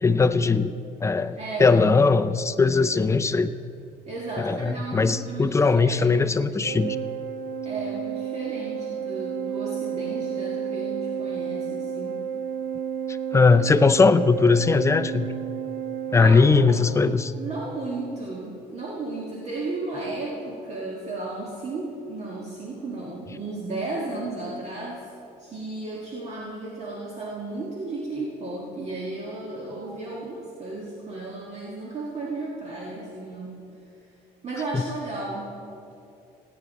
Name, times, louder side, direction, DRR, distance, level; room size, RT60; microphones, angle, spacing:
voice 1, 0.0-3.5 4.4-7.0 13.3-15.3 16.1-17.3, left 4 dB, 15° left, 11 dB, 0.4 m, -20 dB
voice 2, 1.4-1.8 4.1-6.8 7.6-12.2 16.1-16.8 17.4-25.1 25.4-33.6 34.4-35.6, right 2 dB, 40° right, -4 dB, 1.8 m, -34 dB
Organ, 6.6-17.4, right 8 dB, 60° right, 0.6 m, -31 dB
17.0 x 9.5 x 4.1 m, 2.6 s
cardioid pair, 110°, 17 cm